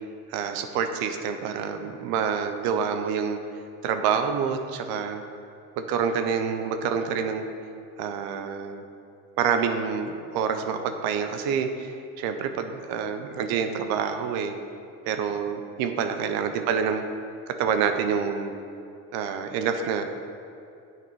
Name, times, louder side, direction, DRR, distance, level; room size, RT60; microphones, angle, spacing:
voice 1, 0.3-3.4 3.8-5.2 5.8-7.5 8.0-8.8 9.4-14.5 15.1-17.0 17.5-18.5 19.1-20.0, right 6 dB, 85° right, 7 dB, 0.7 m, -27 dB
7.6 x 6.1 x 4.7 m, 2.7 s
supercardioid pair, 90°, 35 cm